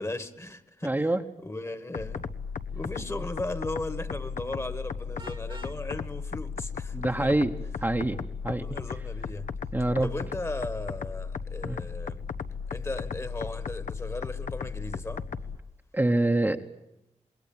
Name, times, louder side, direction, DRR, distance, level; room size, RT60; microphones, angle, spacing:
voice 1, 0.0-1.1 1.4-2.3 2.7-7.4 8.5-9.5 10.0-12.2 12.7-15.2, left 2 dB, 20° left, 1.5 m, -37 dB
voice 2, 0.8-1.2 6.9-7.5 7.8-8.2 8.4-8.6 9.7-10.1 11.6-11.8 15.9-16.6, right 2 dB, 15° right, 1.0 m, -25 dB
sound 1, 1.9-15.6, left 5 dB, 75° left, 1.1 m, -36 dB
Vehicle horn car horn honking, 5.2-5.8, right 3 dB, 40° right, 1.4 m, -46 dB
27.0 x 21.0 x 8.8 m
wide cardioid pair, 125°, 13 cm